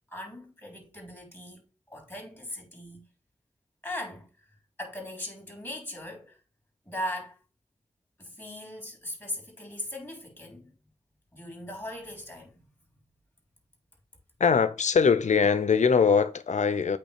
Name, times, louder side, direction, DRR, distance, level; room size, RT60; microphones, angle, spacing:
voice 1, 0.1-1.6 1.9-3.0 3.8-4.3 4.8-6.4 6.9-7.4 8.2-10.7 11.3-12.6, left 1 dB, 20° left, 3.8 m, -39 dB
voice 2, 14.4-17.0, left 6 dB, 80° left, 0.6 m, -22 dB
8.6 x 3.2 x 4.8 m
cardioid pair, 50°, 12 cm